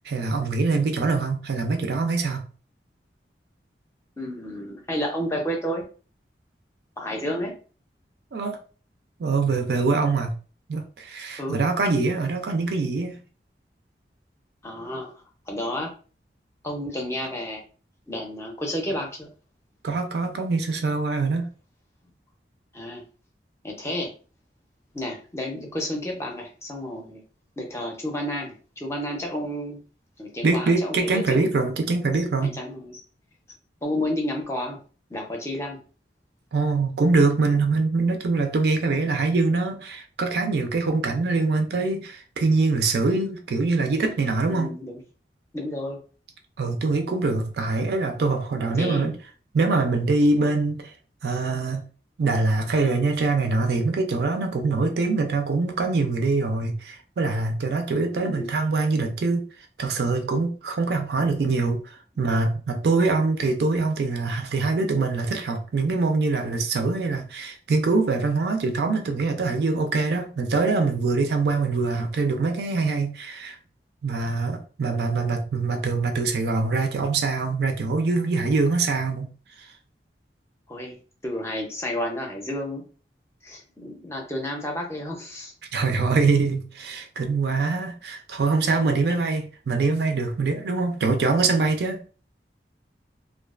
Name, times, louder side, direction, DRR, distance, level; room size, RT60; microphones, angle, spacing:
voice 1, 0.1-2.4 8.3-8.6 9.2-10.4 10.7-13.2 19.8-21.5 30.4-32.5 36.5-44.7 46.6-49.1 49.5-50.9 51.2-51.8 52.2-59.5 59.8-73.6 74.0-79.3 79.6-79.7 85.7-92.0, right 3 dB, 65° right, 0.4 m, -24 dB
voice 2, 4.2-5.8 7.0-7.5 11.4-11.6 14.6-15.1 15.5-15.9 16.6-17.6 18.1-19.3 22.7-23.0 23.6-24.1 24.9-27.2 27.6-29.8 30.2-31.4 32.4-33.0 33.8-34.8 35.1-35.8 44.5-45.0 45.5-46.0 48.7-49.1 58.1-58.5 80.7-82.8 83.4-85.5 89.1-89.2, left 1 dB, 15° left, 0.5 m, -31 dB
2.4 x 2.2 x 2.3 m
head